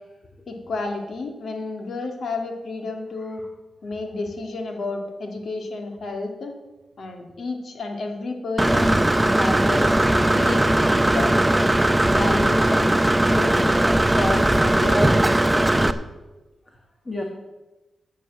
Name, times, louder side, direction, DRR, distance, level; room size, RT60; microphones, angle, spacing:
voice 1, 0.5-3.4 3.8-6.6 7.0-9.9 10.4-11.4 12.1-13.0 13.3-16.0, left 3 dB, 65° left, 4 dB, 1.9 m, -31 dB
Engine / Mechanisms, 8.6-15.9, right 1 dB, 10° right, 0.6 m, -19 dB
voice 2, 16.7-17.2, left 2 dB, 25° left, 2 dB, 1.5 m, -36 dB
10.0 x 7.1 x 7.5 m, 1.1 s
cardioid pair, 85°, 0 cm